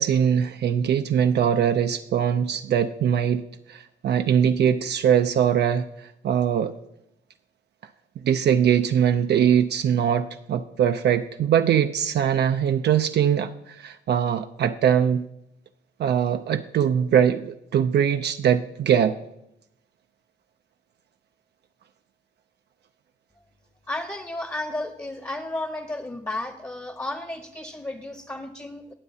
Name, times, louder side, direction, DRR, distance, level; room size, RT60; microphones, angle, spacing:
voice 1, 0.0-3.4 3.7-6.7 8.2-15.3 16.0-19.2, right 8 dB, 55° right, 8 dB, 0.5 m, -22 dB
voice 2, 23.9-28.9, left 2 dB, 15° left, 6 dB, 0.9 m, -33 dB
18.5 x 6.9 x 2.7 m, 0.82 s
cardioid pair, 90°, 20 cm